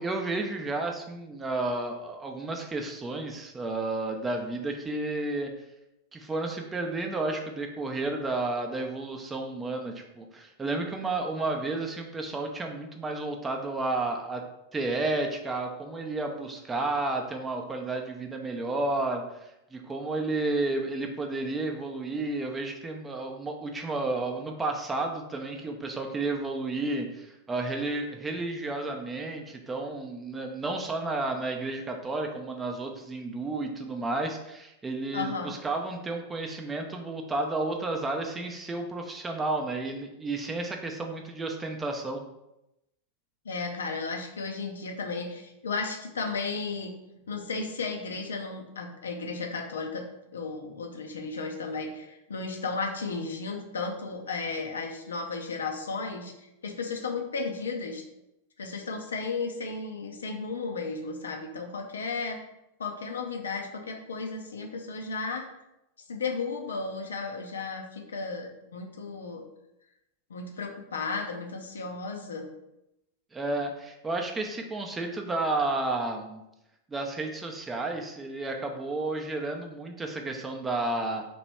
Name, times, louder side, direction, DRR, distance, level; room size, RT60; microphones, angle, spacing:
voice 1, 0.0-5.5 6.1-14.4 14.7-42.2 73.3-76.4 76.9-81.2, right 2 dB, 15° right, 3 dB, 0.6 m, -32 dB
voice 2, 35.1-35.5 43.4-46.9 47.3-50.0 50.3-58.0 58.6-62.4 62.8-65.5 66.1-69.4 70.3-72.5, left 4 dB, 70° left, 3 dB, 0.6 m, -34 dB
3.0 x 3.0 x 4.3 m, 0.88 s
figure-of-eight pair, 90°, 0 cm